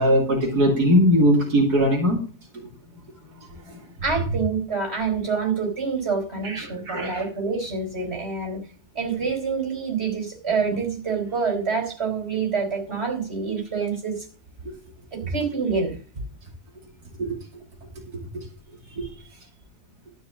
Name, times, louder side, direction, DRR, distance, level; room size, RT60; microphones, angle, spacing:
voice 1, 0.0-2.2 3.5-3.8 6.4-7.2 17.2-17.4 18.3-18.4 18.9-19.1, equal, 80° right, -1 dB, 3.1 m, -20 dB
voice 2, 4.0-8.6 8.9-14.3 15.1-16.0, right 5 dB, 40° right, 3 dB, 4.6 m, -27 dB
13.0 x 5.8 x 7.1 m, 0.38 s
omnidirectional pair, 1.7 m